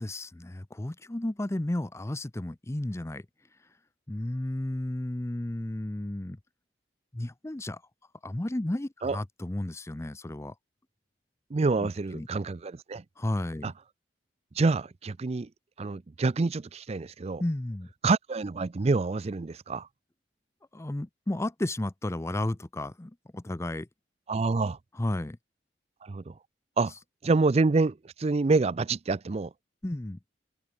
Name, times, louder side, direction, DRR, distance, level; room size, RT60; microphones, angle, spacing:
voice 1, 0.0-3.2 4.1-6.4 7.1-7.8 8.2-10.5 11.8-12.3 13.2-13.7 17.4-17.9 20.7-23.9 25.0-25.4 29.8-30.2, left 1 dB, 15° left, 0.5 m, -33 dB
voice 2, 11.5-13.0 13.6-13.7 14.5-15.5 15.8-17.4 18.0-19.9 24.3-24.8 26.0-26.3 26.8-26.9 27.2-29.5, right 3 dB, 35° right, 0.4 m, -27 dB
head